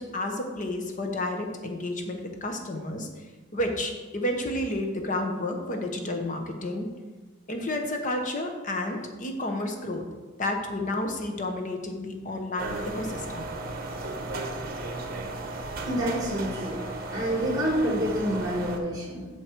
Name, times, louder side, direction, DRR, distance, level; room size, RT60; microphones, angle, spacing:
voice 1, 0.0-3.1 3.5-6.9 7.5-10.0 10.4-13.5, left 1 dB, 40° left, 3 dB, 1.1 m, -31 dB
sound 1, 12.6-18.8, right 2 dB, 50° right, 0.9 m, -35 dB
voice 2, 15.8-16.8 17.1-19.4, equal, 20° right, -2 dB, 2.3 m, -28 dB
7.8 x 6.4 x 4.6 m, 1.2 s
head